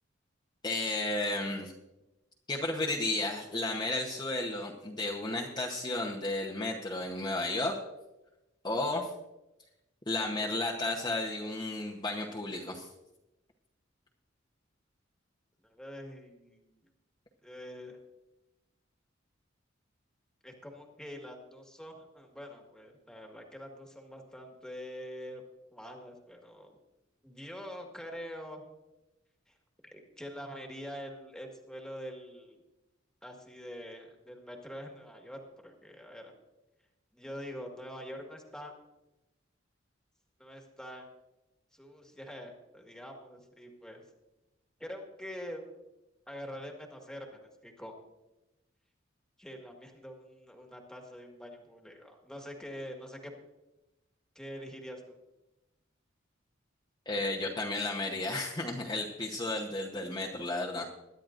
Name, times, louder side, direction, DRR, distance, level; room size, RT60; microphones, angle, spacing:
voice 1, 0.6-1.7 2.5-7.8 8.6-9.1 10.1-12.9 57.1-60.8, left 2 dB, 25° left, -3 dB, 1.0 m, -33 dB
voice 2, 15.6-16.9 17.4-18.0 20.4-25.4 25.7-26.8 27.2-28.6 29.5-29.6 29.8-32.6 33.2-36.3 37.1-38.7 40.4-41.1 41.7-44.0 44.8-45.6 46.3-48.0 49.4-53.3 54.4-55.2, equal, 5° left, 1 dB, 1.7 m, -45 dB
22.5 x 10.5 x 2.6 m, 0.98 s
head